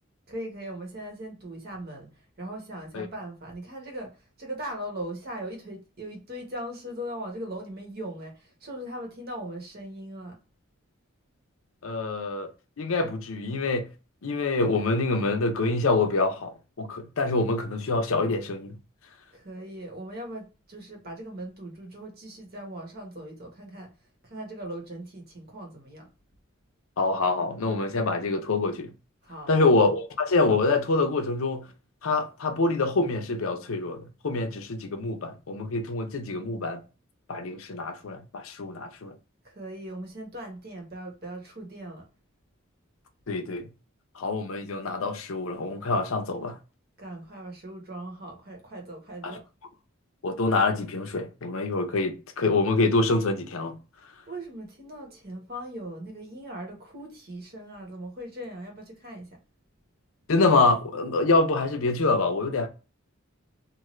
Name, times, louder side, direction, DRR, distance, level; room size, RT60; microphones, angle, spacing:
voice 1, 0.3-2.1 2.4-10.4 19.3-23.9 24.2-26.1 29.2-29.7 39.4-42.0 47.0-49.4 54.3-59.4, right 1 dB, 50° right, 1.0 m, -39 dB
voice 2, 11.8-12.5 12.8-13.9 14.2-18.8 27.0-28.9 29.5-31.7 32.0-36.8 37.3-39.1 43.3-43.7 44.2-46.6 49.2-49.4 50.2-53.7 60.3-62.7, left 3 dB, 80° left, 0.6 m, -26 dB
2.6 x 2.5 x 3.0 m
head